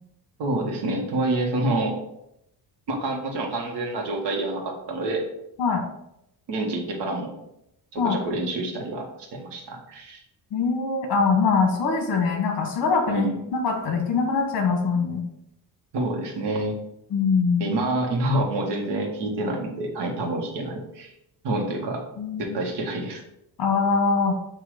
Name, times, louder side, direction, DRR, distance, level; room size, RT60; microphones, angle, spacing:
voice 1, 0.4-2.0 2.9-5.2 6.5-7.3 7.9-9.1 9.3-10.2 13.1-13.3 15.9-16.7 17.6-21.1 21.4-22.0 22.4-23.2, right 2 dB, 75° right, 1 dB, 1.6 m, -27 dB
voice 2, 10.5-15.2 17.1-17.7 22.2-22.6 23.6-24.4, left 4 dB, 55° left, 2 dB, 1.3 m, -23 dB
7.8 x 2.9 x 5.0 m, 0.82 s
cardioid pair, 140°, 42 cm